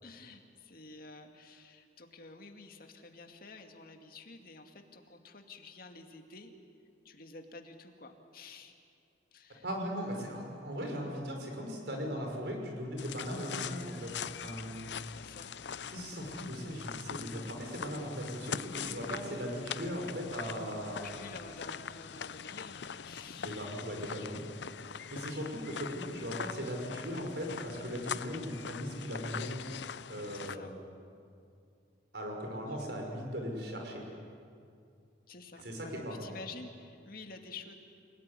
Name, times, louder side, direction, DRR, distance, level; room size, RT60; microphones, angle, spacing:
voice 1, 0.0-6.5 7.0-8.7 9.3-9.7 15.2-15.5 21.0-23.6 30.3-30.7 32.7-33.3 35.3-35.7 36.1-37.7, left 3 dB, 55° left, 4 dB, 2.3 m, -50 dB
voice 2, 9.6-14.2 14.4-14.9 15.9-21.0 23.3-24.4 25.1-29.6 30.1-30.7 32.1-34.0 35.6-36.3, equal, 70° right, 2 dB, 5.7 m, -38 dB
sound 1, 13.0-30.6, left 7 dB, 75° left, 0.6 m, -42 dB
28.5 x 18.0 x 9.8 m, 2.4 s
head